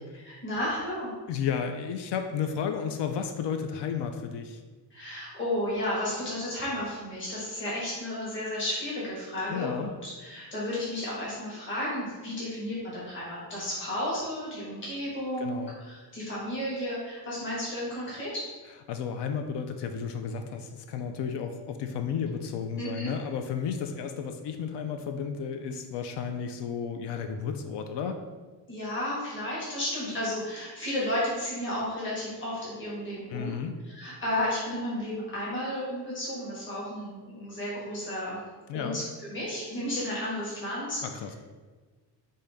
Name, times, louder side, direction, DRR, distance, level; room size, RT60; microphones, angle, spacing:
voice 1, 0.1-1.1 4.9-18.5 22.8-23.1 28.7-33.6 33.8-38.4 38.7-41.0, left 1 dB, 25° left, -8 dB, 1.4 m, -33 dB
voice 2, 1.3-4.6 9.5-9.9 15.4-15.7 18.9-28.2 33.3-33.8 38.7-39.0 41.0-41.3, left 7 dB, 75° left, 6 dB, 0.5 m, -33 dB
5.3 x 2.7 x 3.4 m, 1.4 s
cardioid pair, 150°, 43 cm